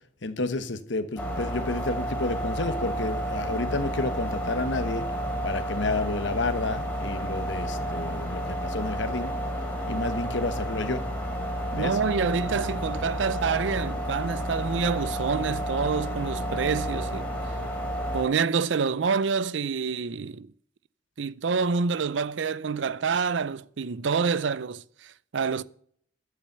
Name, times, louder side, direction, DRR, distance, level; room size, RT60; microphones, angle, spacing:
voice 1, 0.2-5.1 5.4-9.3 9.9-11.0 11.7-12.0, left 2 dB, 70° left, 1.1 m, -30 dB
sound 1, 1.2-18.2, equal, 10° left, 3.2 m, -31 dB
voice 2, 11.7-17.3 18.1-20.5 21.2-25.6, right 5 dB, 75° right, 0.5 m, -27 dB
12.0 x 8.6 x 6.8 m
head